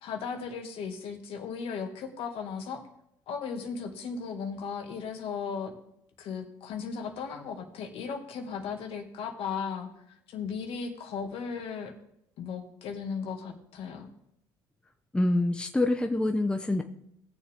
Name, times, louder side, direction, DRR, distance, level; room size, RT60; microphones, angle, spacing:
voice 1, 0.0-2.8 3.3-5.7 6.2-9.9 10.3-11.9 12.4-14.1, left 6 dB, 65° left, 3 dB, 2.0 m, -36 dB
voice 2, 15.1-16.8, left 2 dB, 10° left, 6 dB, 0.8 m, -26 dB
17.5 x 7.1 x 3.6 m, 0.76 s
supercardioid pair, 85°, 10 cm